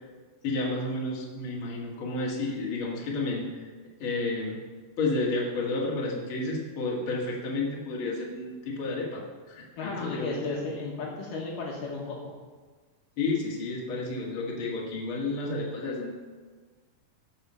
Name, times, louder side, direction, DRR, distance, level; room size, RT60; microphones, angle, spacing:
voice 1, 0.4-3.5 4.0-4.6 5.0-10.4 13.2-16.2, left 2 dB, 40° left, -4 dB, 2.4 m, -31 dB
voice 2, 9.8-12.2, left 3 dB, 65° left, -3 dB, 3.0 m, -34 dB
14.0 x 5.5 x 7.0 m, 1.5 s
omnidirectional pair, 4.4 m